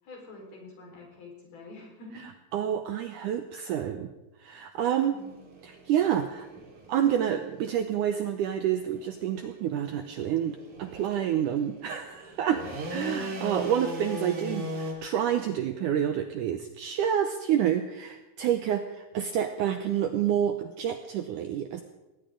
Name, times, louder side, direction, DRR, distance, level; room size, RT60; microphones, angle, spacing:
voice 1, 0.0-2.3 5.1-5.5 13.0-13.3, left 2 dB, 70° left, -1 dB, 6.3 m, -47 dB
voice 2, 2.5-4.1 4.4-5.2 5.6-6.5 6.9-21.8, right 9 dB, 80° right, 7 dB, 1.9 m, -28 dB
sound 1, 5.2-14.9, equal, 50° right, 4.0 m, -40 dB
19.0 x 19.0 x 3.8 m, 1.0 s
omnidirectional pair, 4.5 m